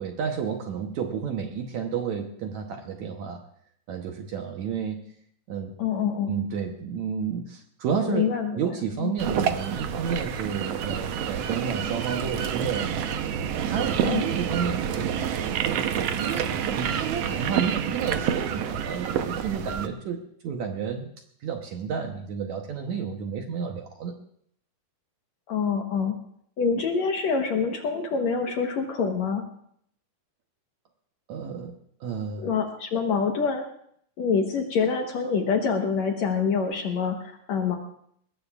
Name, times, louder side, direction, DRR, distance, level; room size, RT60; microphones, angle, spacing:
voice 1, 0.0-3.4 3.9-5.0 5.5-5.7 6.3-13.2 13.5-15.1 15.6-21.1 21.4-24.2 31.3-32.5, right 6 dB, 65° right, 3 dB, 1.9 m, -31 dB
voice 2, 5.8-6.3 8.1-9.1 14.0-14.3 25.5-26.1 26.6-29.4 32.4-33.6 34.2-37.8, left 5 dB, 65° left, 3 dB, 2.0 m, -26 dB
sound 1, 9.2-19.9, right 8 dB, 85° right, 1.4 m, -28 dB
22.0 x 19.0 x 2.4 m, 0.67 s
omnidirectional pair, 4.2 m